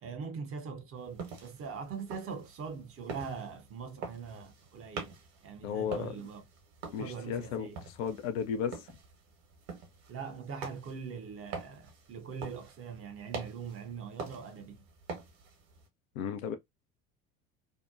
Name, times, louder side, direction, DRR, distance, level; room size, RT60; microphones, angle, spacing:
voice 1, 0.0-5.2 5.4-6.5 7.0-7.8 10.1-14.8, right 6 dB, 30° right, 0.7 m, -42 dB
sound 1, 1.0-15.9, right 4 dB, 55° right, 1.1 m, -46 dB
voice 2, 5.6-6.1 6.9-7.7 8.0-8.8 16.2-16.6, left 7 dB, 65° left, 0.6 m, -34 dB
2.7 x 2.1 x 2.4 m
figure-of-eight pair, 65°, 43 cm